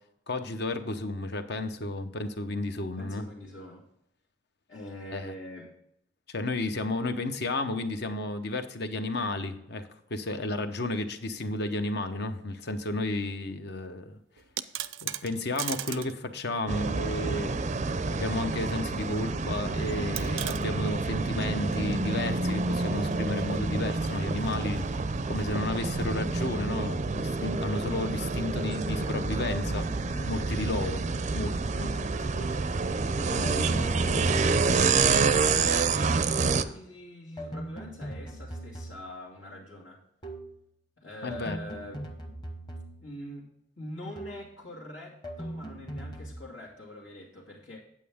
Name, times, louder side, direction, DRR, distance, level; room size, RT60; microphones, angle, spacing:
voice 1, 0.3-3.2 5.1-5.3 6.3-14.2 15.0-24.8 25.3-29.9 30.3-31.0 31.3-32.0 41.2-41.6, left 2 dB, 60° left, 8 dB, 0.9 m, -32 dB
voice 2, 3.0-3.9 4.7-5.7 33.2-34.3 35.4-40.0 41.0-42.1 43.0-43.5 43.8-47.8, left 1 dB, 85° left, -6 dB, 2.3 m, -43 dB
sound 1, 14.4-16.2 16.5-16.6 18.0-18.7 19.0-19.1 20.2-20.7 22.6-25.5, right 13 dB, 90° right, 0.5 m, -39 dB
sound 2, 16.7-36.6, right 4 dB, 40° right, 0.5 m, -28 dB
sound 3, 29.5-31.3 32.3-32.8 33.4-35.3 36.3-36.7 37.4-39.3 40.2-40.6 41.3-43.2 44.2-44.6 45.2-46.4, right 1 dB, 25° left, 1.1 m, -40 dB
9.2 x 8.5 x 3.6 m, 0.79 s
head